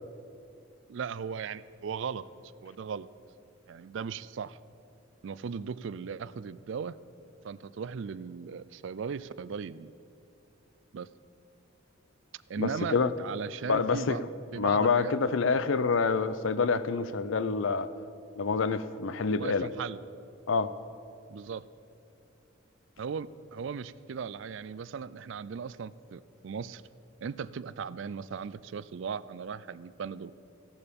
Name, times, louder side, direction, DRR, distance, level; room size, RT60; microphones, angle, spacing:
voice 1, 0.9-2.2 2.6-3.1 3.7-4.6 5.2-7.0 7.4-9.9 10.9-11.1 12.3-14.2 14.5-15.1 19.4-20.0 21.3-21.6 23.0-26.8 27.2-30.3, right 6 dB, 60° right, 17 dB, 0.4 m, -37 dB
voice 2, 12.6-13.1 13.7-14.2 14.6-17.9 18.3-19.7 20.5-20.7, left 4 dB, 65° left, 14 dB, 0.5 m, -27 dB
15.0 x 11.0 x 5.2 m, 2.6 s
head